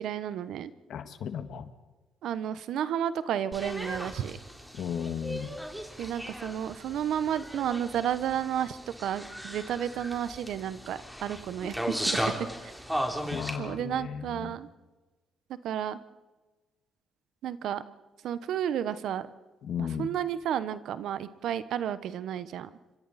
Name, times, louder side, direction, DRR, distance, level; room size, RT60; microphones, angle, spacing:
voice 1, 0.0-0.7 2.2-4.4 6.0-12.2 12.6-12.7 13.6-14.7 15.6-16.0 17.4-17.8 18.2-19.3 19.8-22.7, right 9 dB, 75° right, 14 dB, 1.0 m, -32 dB
voice 2, 0.9-1.7 4.7-5.5 13.3-14.5 19.6-20.1, left 8 dB, 70° left, 9 dB, 1.7 m, -35 dB
sound 1, 3.5-13.6, equal, 5° right, 3.5 m, -36 dB
29.0 x 25.5 x 4.2 m, 1.2 s
cardioid pair, 90°, 0 cm